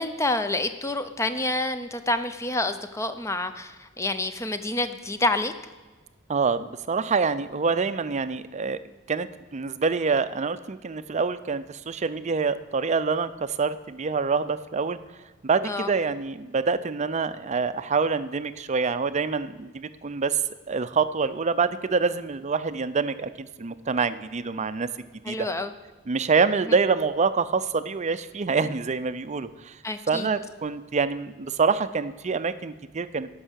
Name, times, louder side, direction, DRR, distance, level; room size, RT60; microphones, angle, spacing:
voice 1, 0.0-5.5 15.6-15.9 25.2-25.7 29.8-30.3, left 2 dB, 15° left, 10 dB, 0.6 m, -28 dB
voice 2, 6.3-8.8 9.1-15.0 15.4-20.4 20.7-24.9 25.3-25.4 26.1-29.8 30.1-33.3, right 5 dB, 35° right, 13 dB, 0.5 m, -26 dB
12.0 x 5.6 x 8.1 m, 1.3 s
head